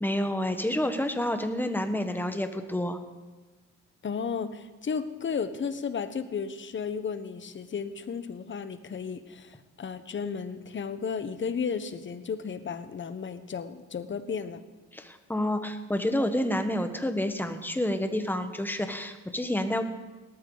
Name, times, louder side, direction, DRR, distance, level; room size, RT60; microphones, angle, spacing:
voice 1, 0.0-3.0 14.9-19.8, left 1 dB, 5° left, 8 dB, 1.4 m, -29 dB
voice 2, 4.0-14.6, left 6 dB, 40° left, 11 dB, 1.1 m, -34 dB
18.5 x 13.5 x 4.0 m, 1.2 s
cardioid pair, 90°, 30 cm